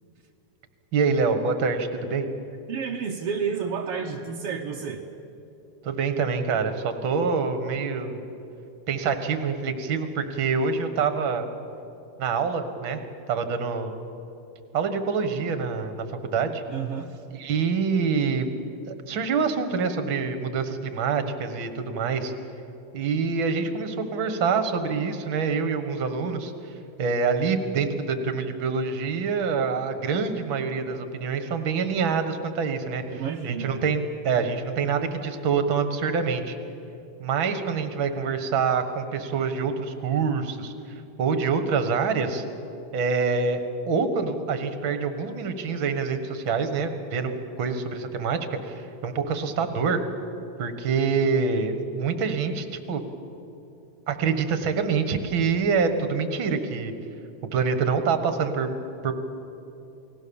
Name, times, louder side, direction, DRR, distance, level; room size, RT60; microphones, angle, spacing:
voice 1, 0.9-2.3 5.8-8.2 8.9-11.5 12.2-13.0 13.3-13.9 14.7-16.1 16.3-16.6 17.4-18.5 18.9-22.3 22.9-26.5 27.0-36.6 37.2-40.7 41.2-42.4 42.9-43.6 43.9-47.3 47.6-50.0 50.6-53.0 54.1-56.9 57.5-58.7 59.0-59.1, right 5 dB, 45° right, 9 dB, 1.8 m, -26 dB
voice 2, 2.7-5.0 16.7-17.2 33.1-33.8, right 6 dB, 65° right, 1 dB, 1.5 m, -30 dB
29.0 x 19.5 x 7.1 m, 2.9 s
omnidirectional pair, 3.8 m